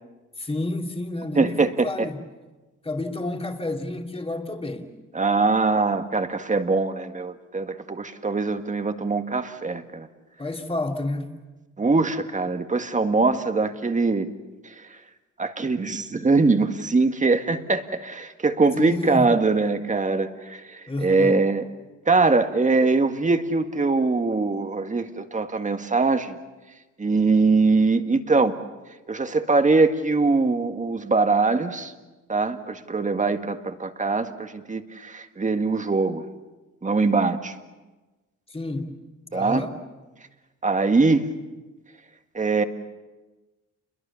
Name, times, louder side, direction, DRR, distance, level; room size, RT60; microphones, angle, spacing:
voice 1, 0.4-2.2 2.8-4.9 10.4-11.3 18.7-19.3 20.9-21.4 38.5-39.0 39.3-39.9, left 2 dB, 20° left, 2.8 m, -30 dB
voice 2, 1.3-2.1 5.1-10.1 11.8-14.3 15.4-21.6 22.1-26.4 27.0-28.5 29.1-31.9 32.3-36.2 36.8-37.6 39.3-39.7 40.6-41.3 42.3-42.6, right 3 dB, 25° right, 1.8 m, -22 dB
28.5 x 22.5 x 7.1 m
cardioid pair, 90°, 30 cm